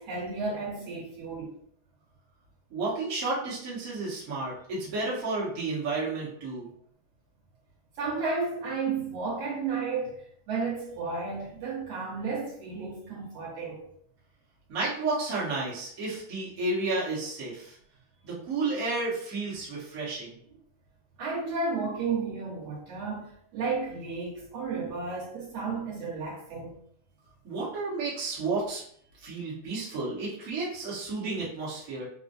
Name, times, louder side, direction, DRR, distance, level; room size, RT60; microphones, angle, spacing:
voice 1, 0.0-1.5 8.0-13.9 21.2-26.7, right 4 dB, 65° right, 2.0 m, -33 dB
voice 2, 2.7-6.7 14.7-17.7 18.2-20.3 27.4-28.8 29.2-32.1, right 3 dB, 45° right, 1.2 m, -32 dB
4.9 x 2.2 x 2.6 m
omnidirectional pair, 3.4 m